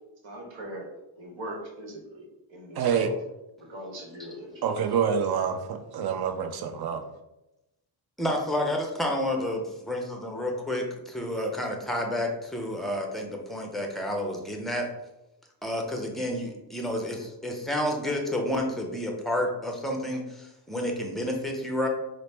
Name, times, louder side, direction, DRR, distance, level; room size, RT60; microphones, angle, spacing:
voice 1, 0.2-0.9 1.2-3.1 3.6-4.6, right 1 dB, 70° right, 0 dB, 1.2 m, -41 dB
voice 2, 2.7-3.1 4.6-7.0, right 7 dB, 50° right, 6 dB, 0.5 m, -27 dB
voice 3, 8.2-14.9 15.6-21.9, left 1 dB, ahead, 1 dB, 0.5 m, -30 dB
4.0 x 2.0 x 3.2 m, 0.94 s
cardioid pair, 95°, 48 cm